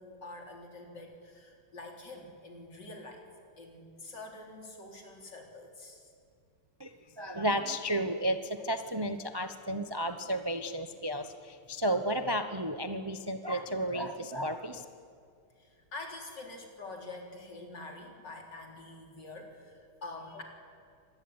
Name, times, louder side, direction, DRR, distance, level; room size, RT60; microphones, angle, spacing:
voice 1, 0.0-3.2 3.6-6.1 15.6-20.4, left 2 dB, 55° left, 2 dB, 4.4 m, -46 dB
voice 2, 6.8-14.8, equal, 40° right, 8 dB, 0.3 m, -33 dB
26.0 x 19.5 x 9.8 m, 2.3 s
omnidirectional pair, 2.3 m